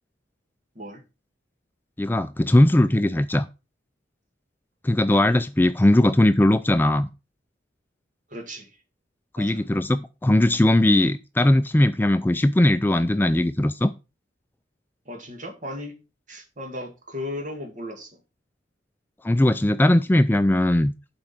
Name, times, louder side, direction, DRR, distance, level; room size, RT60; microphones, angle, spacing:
voice 1, 2.0-3.5 4.8-7.1 9.3-13.9 19.2-20.9, left 1 dB, 10° left, 0.3 m, -19 dB
voice 2, 8.3-8.8 9.4-9.6 15.1-16.0 16.3-18.2, left 1 dB, 45° right, 2.0 m, -36 dB
7.6 x 5.0 x 5.8 m
head